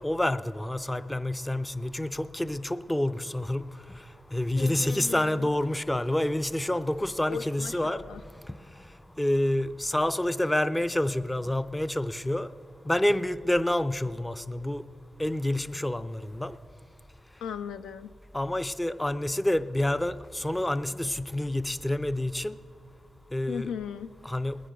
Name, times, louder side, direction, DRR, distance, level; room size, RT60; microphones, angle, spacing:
voice 1, 0.0-3.7 4.3-8.0 8.5-8.6 9.2-12.5 12.8-14.8 15.2-16.6 18.3-22.6 23.3-23.7 24.2-24.6, left 1 dB, 15° left, 14 dB, 0.5 m, -28 dB
voice 2, 4.5-5.5 7.3-8.2 17.4-18.1 23.5-24.1, left 7 dB, 90° left, 12 dB, 0.3 m, -37 dB
20.5 x 9.9 x 3.8 m, 2.3 s
cardioid pair, 55°, 0 cm